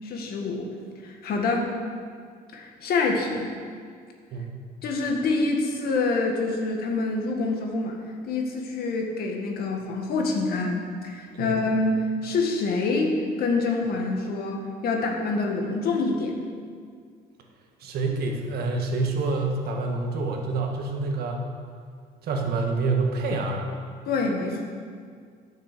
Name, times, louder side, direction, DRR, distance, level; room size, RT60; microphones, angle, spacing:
voice 1, 0.0-0.7 1.0-1.8 2.5-3.5 4.8-16.3 24.1-24.6, left 3 dB, 65° left, 1 dB, 1.7 m, -26 dB
voice 2, 17.8-21.4 22.2-23.7, right 3 dB, 65° right, 2 dB, 1.6 m, -27 dB
10.0 x 6.7 x 6.7 m, 2.1 s
cardioid pair, 110°, 17 cm